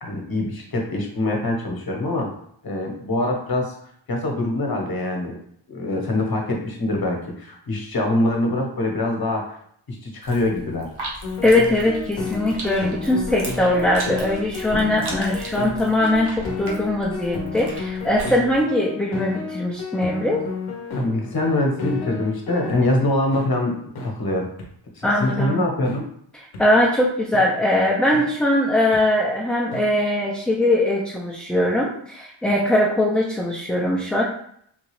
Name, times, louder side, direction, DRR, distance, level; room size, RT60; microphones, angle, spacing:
voice 1, 0.0-2.3 2.6-3.7 4.1-5.4 5.7-9.4 9.9-10.9 20.9-24.5 25.0-26.0, left 1 dB, 45° left, 0 dB, 1.1 m, -24 dB
sound 1, 10.2-18.6, right 1 dB, 55° right, 1.1 m, -37 dB
sound 2, 11.2-22.8 23.3-23.5 23.9-24.1 24.6-24.7 25.2-25.4 25.8-26.0 26.5-26.6 27.3-27.5 28.1-28.3 28.9-29.0 29.7-29.8, left 4 dB, 85° left, 0.8 m, -31 dB
voice 2, 11.4-20.5 25.0-25.6 26.6-34.2, left 1 dB, ahead, -3 dB, 0.5 m, -21 dB
3.9 x 2.4 x 3.1 m, 0.67 s
wide cardioid pair, 90°, 48 cm